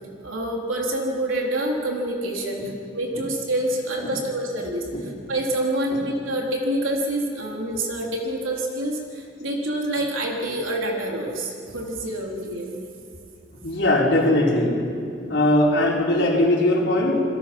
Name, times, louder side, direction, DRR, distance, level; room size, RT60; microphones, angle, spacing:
voice 1, 0.2-12.7, right 1 dB, 85° right, -1 dB, 3.7 m, -27 dB
voice 2, 13.6-14.8 15.2-17.2, left 1 dB, 60° left, -3 dB, 4.8 m, -20 dB
27.0 x 21.0 x 6.2 m, 2.4 s
head